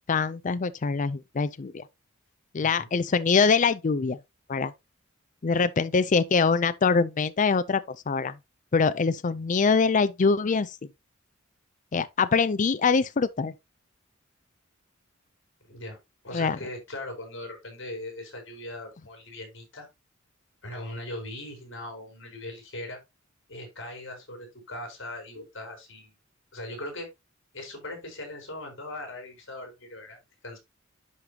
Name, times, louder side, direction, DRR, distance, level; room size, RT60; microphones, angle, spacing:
voice 1, 0.1-1.8 2.5-4.2 4.5-4.7 5.4-8.4 8.7-10.8 11.9-13.5 16.3-16.6, left 5 dB, 40° left, 0.5 m, -24 dB
voice 2, 2.6-2.9 15.7-16.0 16.2-19.9 20.6-23.0 23.5-26.1 26.5-27.1 27.5-30.2 30.4-30.6, left 1 dB, 65° left, 4.3 m, -39 dB
11.0 x 5.2 x 2.9 m
head